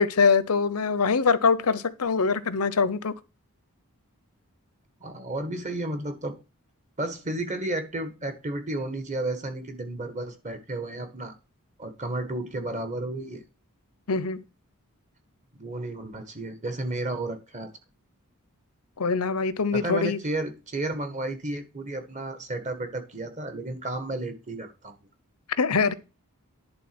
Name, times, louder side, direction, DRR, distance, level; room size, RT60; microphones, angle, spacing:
voice 1, 0.0-3.1 14.1-14.4 19.0-20.2 25.6-25.9, left 5 dB, 85° left, 0.8 m, -23 dB
voice 2, 5.0-6.4 7.0-11.3 11.8-13.4 15.6-17.7 19.7-24.9, right 2 dB, 35° right, 1.6 m, -32 dB
11.0 x 3.9 x 6.1 m
head